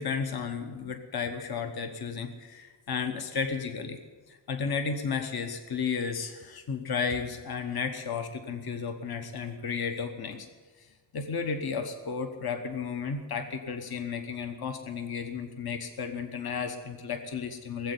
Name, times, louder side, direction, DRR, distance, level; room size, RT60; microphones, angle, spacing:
voice 1, 0.0-4.0 4.3-10.5 10.8-10.9 11.1-17.9, left 5 dB, 55° left, 6 dB, 1.1 m, -33 dB
18.5 x 7.9 x 9.7 m, 1.4 s
wide cardioid pair, 160°, 46 cm